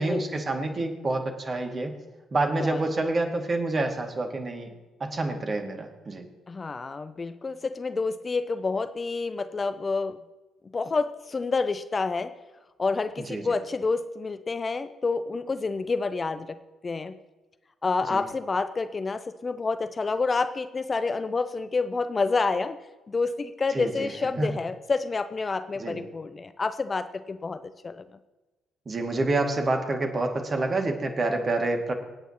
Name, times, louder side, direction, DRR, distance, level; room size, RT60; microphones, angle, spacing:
voice 1, 0.0-1.9 2.3-4.7 5.0-6.2 13.3-13.4 18.1-18.2 23.7-24.1 24.4-24.5 25.8-26.0 28.9-31.9, right 2 dB, 35° right, 4 dB, 2.3 m, -27 dB
voice 2, 6.5-10.2 10.7-12.3 12.8-16.6 16.8-17.2 17.8-22.8 23.1-28.0, left 4 dB, 30° left, 12 dB, 0.6 m, -28 dB
27.0 x 9.1 x 3.0 m, 1.2 s
figure-of-eight pair, 45°, 0 cm